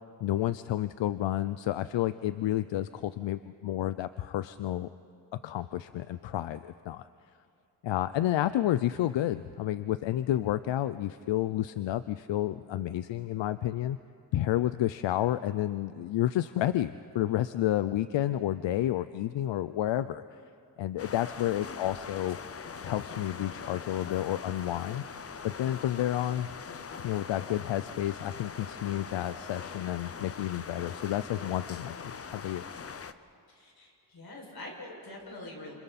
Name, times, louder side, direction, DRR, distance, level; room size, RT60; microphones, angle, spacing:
voice 1, 0.2-4.9 5.4-7.1 7.8-14.0 14.3-20.2 20.8-22.4 22.8-25.0 25.4-26.5 27.0-32.7, left 13 dB, 85° left, 13 dB, 0.6 m, -30 dB
sound 1, 21.0-33.1, left 6 dB, 35° left, 0.7 m, -42 dB
voice 2, 33.5-35.7, left 2 dB, 60° left, -1 dB, 6.0 m, -45 dB
29.0 x 27.5 x 4.2 m, 2.4 s
wide cardioid pair, 125°, 43 cm